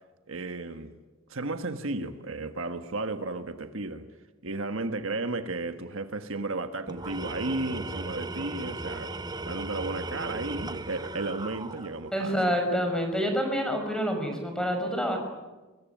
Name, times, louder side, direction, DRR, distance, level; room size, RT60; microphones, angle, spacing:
voice 1, 0.3-0.9 1.3-4.0 4.4-9.2 9.5-12.4, right 2 dB, 65° right, 1.5 m, -33 dB
Tools, 6.9-12.2, right 2 dB, 20° right, 0.9 m, -37 dB
voice 2, 12.1-15.2, equal, 5° left, 5.7 m, -27 dB
25.0 x 22.0 x 9.3 m
head